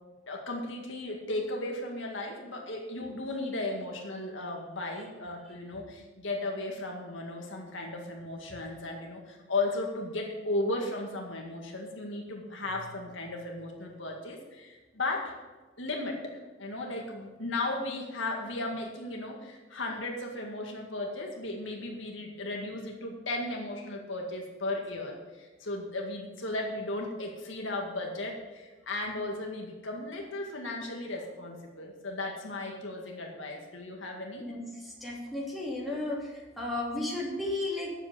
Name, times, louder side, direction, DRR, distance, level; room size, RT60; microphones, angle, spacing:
voice 1, 0.3-15.3 15.8-34.4, left 2 dB, 70° left, 0 dB, 2.0 m, -35 dB
voice 2, 34.4-37.9, left 2 dB, ahead, -4 dB, 2.9 m, -34 dB
9.7 x 7.6 x 7.1 m, 1.2 s
head